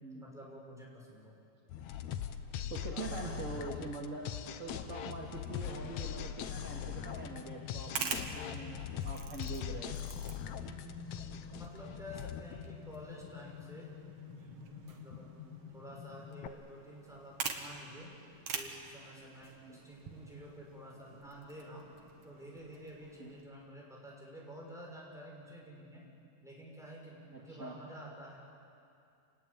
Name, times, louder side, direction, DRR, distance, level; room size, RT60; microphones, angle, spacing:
voice 1, 0.1-1.4 2.6-3.4 10.5-11.2 11.5-13.9 14.3-15.3 15.7-18.1 18.5-21.9 22.2-26.0 26.4-28.4, equal, ahead, -3 dB, 6.0 m, -50 dB
sound 1, 1.7-13.4, left 9 dB, 70° left, 1.8 m, -41 dB
voice 2, 2.7-4.3 4.6-10.0 15.4-15.6 19.6-19.8 23.2-23.3 27.3-27.8, right 3 dB, 25° right, -2 dB, 1.8 m, -44 dB
sound 2, 6.5-16.5, left 9 dB, 85° left, 1.3 m, -50 dB
sound 3, 7.7-23.4, right 6 dB, 50° right, 2.1 m, -46 dB
28.0 x 20.5 x 8.7 m, 2.5 s
omnidirectional pair, 4.1 m